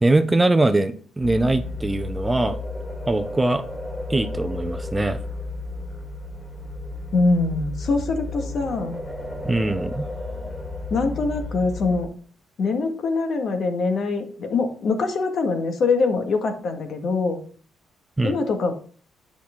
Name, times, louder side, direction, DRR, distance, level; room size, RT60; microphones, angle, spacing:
voice 1, 0.0-2.6 3.1-3.6 4.1-5.2 9.4-10.1 18.2-18.4, right 2 dB, 15° right, 10 dB, 0.7 m, -22 dB
sound 1, 1.2-12.1, left 2 dB, 15° left, 2.9 m, -33 dB
voice 2, 7.1-9.0 10.9-12.1 12.6-17.4 18.2-18.7, left 3 dB, 60° left, 6 dB, 1.8 m, -23 dB
8.4 x 6.0 x 3.7 m, 0.44 s
cardioid pair, 90°, 0 cm